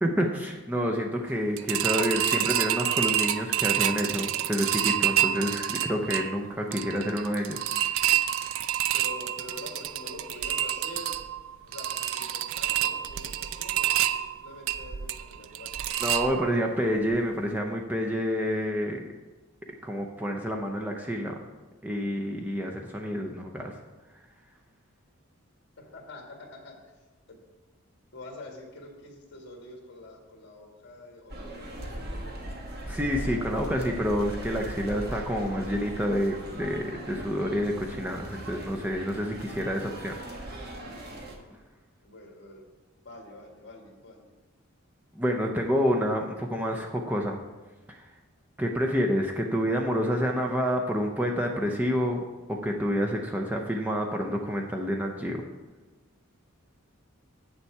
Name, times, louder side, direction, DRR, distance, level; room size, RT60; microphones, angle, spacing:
voice 1, 0.0-7.6 7.9-8.1 16.0-19.0 19.8-21.3 21.8-23.8 32.9-40.6 45.1-47.4 47.9-48.1 48.6-52.2 52.5-55.4, equal, 10° right, 1 dB, 0.6 m, -28 dB
sound 1, 1.6-16.7 17.1-17.2 17.6-17.7, right 11 dB, 70° right, 0.4 m, -28 dB
voice 2, 8.9-11.1 11.7-15.9 25.8-26.9 27.3-27.4 28.1-32.5 42.0-42.6 43.0-44.4, left 2 dB, 55° left, 1 dB, 1.9 m, -46 dB
sound 2, 31.3-41.4, right 1 dB, 45° right, 1.2 m, -39 dB
8.3 x 7.0 x 4.6 m, 1.2 s
head